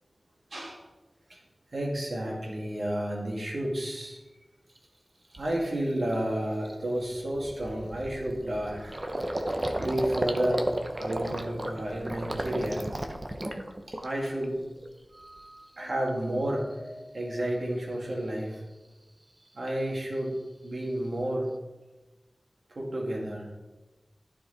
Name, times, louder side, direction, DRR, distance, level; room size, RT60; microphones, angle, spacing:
voice 1, 0.5-0.8 1.3-1.4 1.7-4.2 5.4-9.0 9.4-9.5 9.8-10.7 11.0-12.9 14.0-14.6 15.1-18.6 19.5-21.5 22.7-23.5, right 1 dB, 70° right, -2 dB, 2.1 m, -31 dB
Gurgling, 4.8-4.9 5.3-5.6 6.0-6.1 6.4-14.4 14.8-15.4, right 1 dB, 30° right, 0.7 m, -34 dB
11.5 x 4.8 x 4.1 m, 1.1 s
wide cardioid pair, 80°, 0 cm